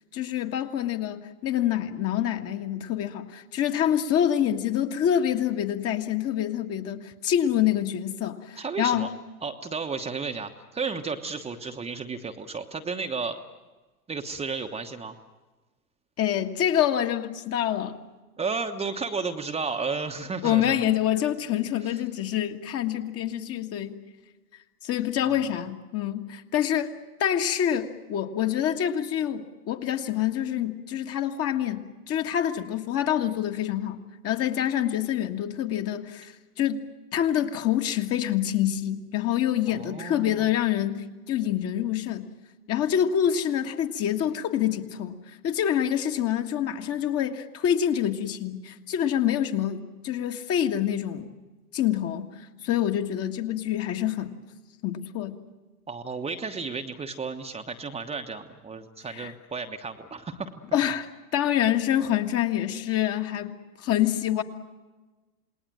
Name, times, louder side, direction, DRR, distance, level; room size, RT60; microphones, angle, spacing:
voice 1, 0.1-9.1 16.2-18.0 20.4-24.0 24.8-26.9 27.2-34.0 34.2-36.8 37.1-42.3 42.7-45.2 45.4-51.3 51.7-52.3 52.6-54.3 54.8-55.4 59.1-59.3 60.7-61.1 61.3-64.4, left 10 dB, 30° left, 6 dB, 1.8 m, -26 dB
voice 2, 8.6-9.1 9.4-13.4 14.1-15.2 18.4-20.8 21.8-21.9 25.2-25.4 39.7-40.5 55.9-60.5, right 4 dB, 15° right, 5 dB, 1.2 m, -33 dB
28.0 x 20.5 x 7.7 m, 1.2 s
hypercardioid pair, 100°, 46 cm